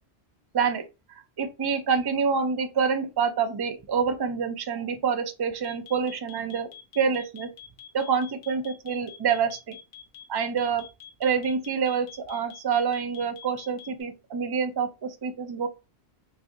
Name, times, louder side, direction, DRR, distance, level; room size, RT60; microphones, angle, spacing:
voice 1, 0.5-0.8 1.4-6.7 7.0-7.5 7.9-9.8 10.3-10.9 11.2-15.7, right 6 dB, 45° right, 0.3 m, -27 dB
sound 1, 5.6-14.0, left 9 dB, 60° left, 0.9 m, -45 dB
3.1 x 2.6 x 3.6 m
omnidirectional pair, 1.1 m